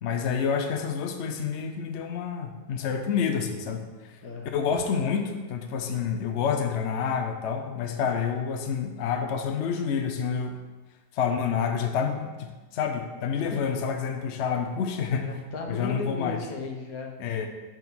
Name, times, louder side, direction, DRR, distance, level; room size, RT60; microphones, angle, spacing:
voice 1, 0.0-3.8 4.5-10.6 11.1-15.3 15.7-16.4 17.2-17.5, left 6 dB, 60° left, 5 dB, 0.9 m, -28 dB
voice 2, 4.2-4.6 13.5-13.7 14.8-17.1, left 3 dB, 80° left, 2 dB, 1.4 m, -36 dB
5.7 x 4.6 x 6.0 m, 1.2 s
omnidirectional pair, 1.5 m